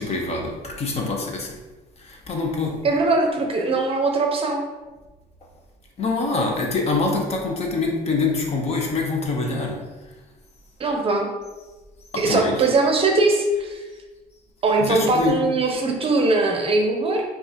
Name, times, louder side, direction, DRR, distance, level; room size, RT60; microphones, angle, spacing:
voice 1, 0.0-1.6 2.0-2.8 6.0-9.8 12.1-12.6 14.8-15.4, left 3 dB, 40° left, 1 dB, 0.8 m, -25 dB
voice 2, 2.8-4.6 10.8-11.3 12.2-13.8 14.6-17.2, right 3 dB, 35° right, 2 dB, 0.6 m, -21 dB
5.2 x 2.5 x 2.8 m, 1.2 s
cardioid pair, 110°, 17 cm